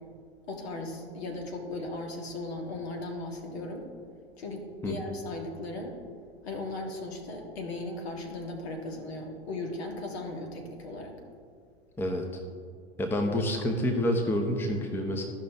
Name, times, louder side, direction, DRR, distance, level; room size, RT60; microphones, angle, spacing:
voice 1, 0.5-3.9 4.4-6.0 6.4-11.2, left 2 dB, 65° left, 2 dB, 1.7 m, -37 dB
voice 2, 13.0-15.3, left 1 dB, 5° left, 3 dB, 0.7 m, -28 dB
14.0 x 5.5 x 3.4 m, 2.2 s
figure-of-eight pair, 95°, 33 cm